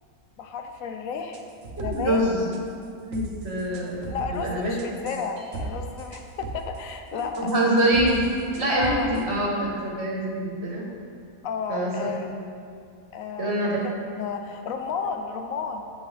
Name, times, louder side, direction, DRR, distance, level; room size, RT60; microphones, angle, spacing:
voice 1, 0.4-1.4 1.8-2.2 4.1-7.5 8.7-9.1 11.4-12.3 13.1-15.8, left 6 dB, 70° left, 5 dB, 1.0 m, -32 dB
sound 1, 1.3-2.2 2.5-2.8 3.1-4.4 4.8-5.7 6.0-6.8 7.2-9.2, right 3 dB, 70° right, 1.1 m, -37 dB
voice 2, 1.8-2.4 3.0-4.7 7.4-8.3 8.5-10.9 11.7-11.9 13.4-13.8, right 1 dB, 50° right, -2 dB, 1.4 m, -25 dB
8.8 x 7.8 x 3.4 m, 2.3 s
omnidirectional pair, 1.5 m